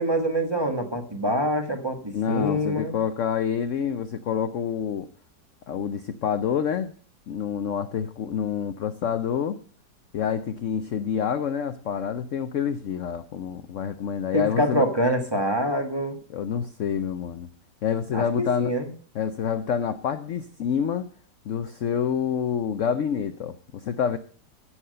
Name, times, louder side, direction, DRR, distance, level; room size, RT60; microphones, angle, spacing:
voice 1, 0.0-2.9 14.3-16.2 18.1-18.9, equal, 15° right, 4 dB, 1.5 m, -25 dB
voice 2, 2.1-5.1 5.7-6.9 7.3-9.6 10.1-14.9 16.3-17.5 17.8-18.7 19.1-21.1 21.5-24.2, left 7 dB, 65° left, 10 dB, 0.7 m, -27 dB
16.0 x 6.3 x 6.6 m, 0.44 s
omnidirectional pair, 2.0 m